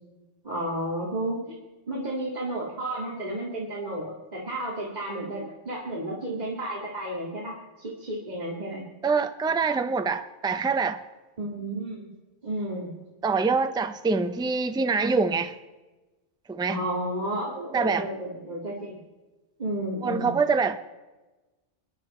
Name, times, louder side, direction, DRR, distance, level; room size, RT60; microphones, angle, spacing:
voice 1, 0.4-1.6 1.9-8.8 11.4-12.1 12.4-12.9 16.7-19.0 19.6-20.3, right 1 dB, 35° right, -5 dB, 2.4 m, -32 dB
voice 2, 9.0-11.0 13.2-15.5 16.5-16.8 17.7-18.1 20.0-20.8, right 4 dB, 5° right, 9 dB, 0.3 m, -25 dB
28.0 x 10.5 x 4.3 m, 1.2 s
omnidirectional pair, 1.2 m